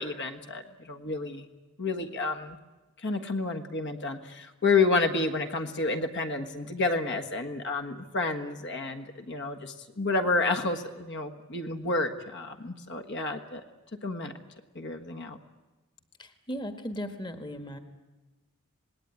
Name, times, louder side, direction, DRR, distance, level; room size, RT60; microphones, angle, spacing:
voice 1, 0.0-1.5 1.8-2.6 3.0-13.6 14.0-14.3 14.7-15.4, left 3 dB, 50° left, 5 dB, 1.5 m, -30 dB
voice 2, 16.2-17.8, equal, 20° left, 7 dB, 1.5 m, -37 dB
26.5 x 19.0 x 9.6 m, 1.2 s
head